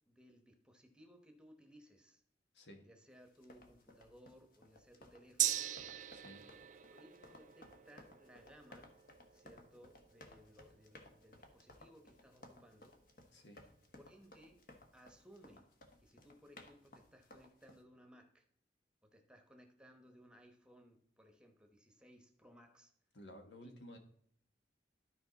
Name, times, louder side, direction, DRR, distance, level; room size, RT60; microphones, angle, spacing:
voice 1, 0.1-2.2 2.8-5.7 6.6-8.9 9.3-13.0 13.5-13.7 14.0-14.6 14.9-15.7 16.0-18.4 19.1-22.9 23.6-24.0, equal, 5° right, 4 dB, 1.0 m, -62 dB
sound 1, 3.3-17.8, left 1 dB, 55° left, 1.2 m, -60 dB
Gong, 5.4-13.2 13.5-13.6, right 12 dB, 45° right, 0.4 m, -43 dB
voice 2, 6.1-6.4 13.3-13.6 23.1-24.0, equal, 90° left, 5 dB, 1.4 m, -54 dB
12.5 x 4.8 x 4.0 m, 0.65 s
head